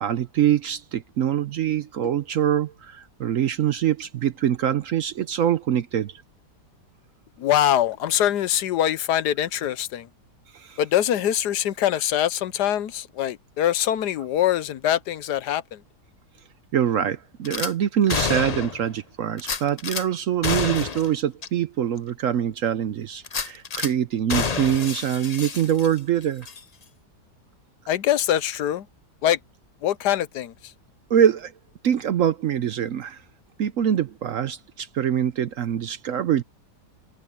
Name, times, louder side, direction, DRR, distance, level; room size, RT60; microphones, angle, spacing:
voice 1, 0.0-6.2 10.5-10.8 16.7-26.5 31.1-31.5 31.8-33.2 33.6-36.4, right 10 dB, 65° right, 0.9 m, -24 dB
voice 2, 7.4-10.1 10.8-15.8 27.9-28.9 29.2-29.4 29.8-30.5, left 11 dB, 75° left, 1.3 m, -23 dB
Gunshot gunfire / Glass, 17.5-17.7 18.1-18.9 19.4-20.0 20.4-21.1 21.4-21.5 22.0-22.1 23.2-23.9 24.3-26.1 26.4-26.6, left 5 dB, 40° left, 0.6 m, -28 dB
omnidirectional pair, 1.8 m